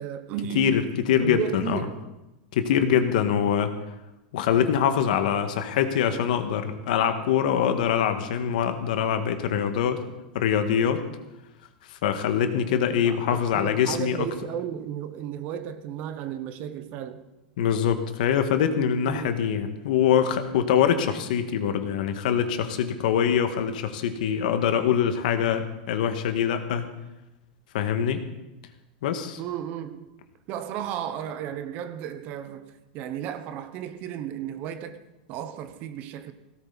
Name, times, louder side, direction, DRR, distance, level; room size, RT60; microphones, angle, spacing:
voice 1, 0.0-0.9 1.2-2.1 12.7-17.2 19.0-19.4 29.4-30.1 30.5-35.0 35.3-36.3, right 9 dB, 35° right, 1.0 m, -34 dB
voice 2, 0.6-1.8 2.5-3.7 4.3-10.0 10.3-11.1 12.0-14.3 17.6-26.9 27.7-28.2 29.0-29.4, left 8 dB, 65° left, 1.8 m, -24 dB
17.5 x 16.5 x 4.1 m
supercardioid pair, 165°, 5 cm